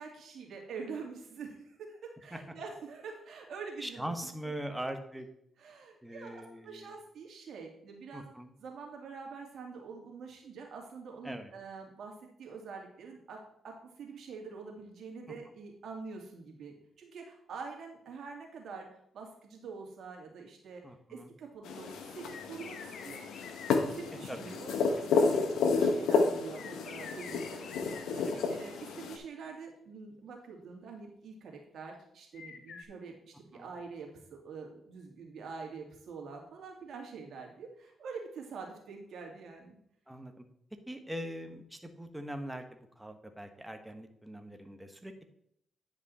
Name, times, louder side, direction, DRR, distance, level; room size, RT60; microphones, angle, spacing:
voice 1, 0.0-4.3 4.7-4.8 5.6-8.3 8.6-12.1 12.4-13.4 13.6-18.9 19.1-20.8 21.1-22.8 23.0-23.3 23.9-27.7 28.1-39.8, right 5 dB, 70° right, 1 dB, 2.3 m, -45 dB
voice 2, 3.8-5.3 6.0-6.9 8.1-8.5 11.2-11.5 20.8-21.3 24.3-24.5 28.2-28.5 33.5-33.7 40.1-40.4 40.9-45.3, right 1 dB, 10° right, 6 dB, 1.3 m, -42 dB
sound 1, 21.6-29.2, left 4 dB, 85° left, 1.0 m, -31 dB
sound 2, 22.3-24.1 25.9-28.1 32.3-32.8, left 5 dB, 60° left, 1.1 m, -48 dB
9.9 x 5.2 x 4.2 m, 0.72 s
cardioid pair, 65°, 0 cm